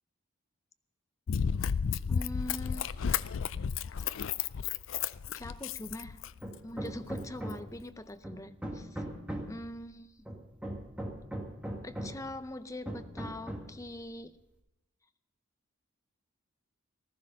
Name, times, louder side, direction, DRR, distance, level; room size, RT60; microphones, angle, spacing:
Run, 1.3-6.5 7.1-7.2, left 7 dB, 60° left, 0.4 m, -32 dB
voice 1, 2.1-2.9 5.3-6.2 6.6-9.0 9.5-10.1 11.8-14.4, left 1 dB, 15° left, 0.6 m, -42 dB
Hammer, 6.4-7.8 8.2-9.6 10.3-12.3 12.9-13.8, right 1 dB, 5° right, 1.8 m, -39 dB
15.0 x 14.0 x 5.5 m
head